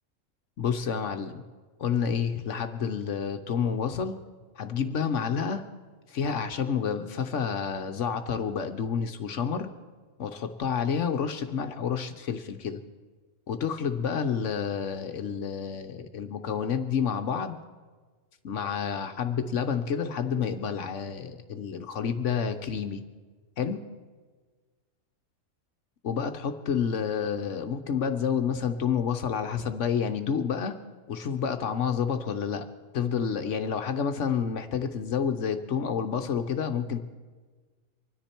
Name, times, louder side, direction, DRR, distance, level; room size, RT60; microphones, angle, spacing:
voice 1, 0.6-1.4 1.8-4.2 4.6-5.6 6.1-9.7 10.2-12.8 13.5-17.6 18.4-23.0 23.6-23.8 26.0-30.7 31.1-32.6 32.9-37.0, left 7 dB, 60° left, 7 dB, 1.0 m, -29 dB
25.0 x 10.0 x 4.4 m, 1.4 s
omnidirectional pair, 1.5 m